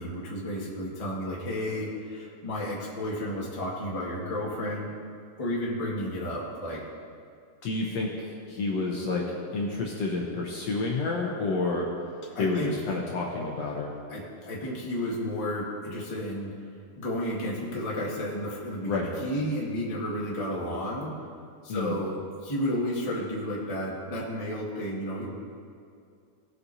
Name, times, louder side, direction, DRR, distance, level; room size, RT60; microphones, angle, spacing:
voice 1, 0.0-4.9 5.4-6.8 12.3-12.7 14.1-16.5 17.0-21.1 21.6-22.1 22.4-25.3, left 1 dB, 20° left, -5 dB, 1.2 m, -32 dB
voice 2, 7.6-8.1 8.5-9.3 9.5-11.9 12.4-13.9 18.9-19.1 21.7-22.0, left 3 dB, 65° left, -2 dB, 1.8 m, -29 dB
18.0 x 8.2 x 2.8 m, 2.4 s
omnidirectional pair, 3.7 m